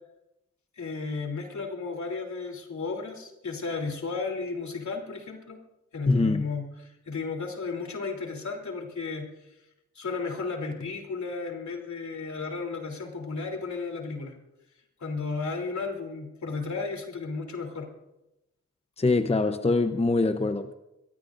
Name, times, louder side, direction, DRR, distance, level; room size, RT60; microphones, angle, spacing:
voice 1, 0.8-5.6 5.9-9.3 10.0-14.3 15.0-17.9, left 4 dB, 70° left, 2 dB, 3.4 m, -34 dB
voice 2, 6.1-6.4 19.0-20.7, left 3 dB, 20° left, 9 dB, 0.8 m, -24 dB
22.0 x 18.0 x 2.6 m, 0.92 s
cardioid pair, 55°, 29 cm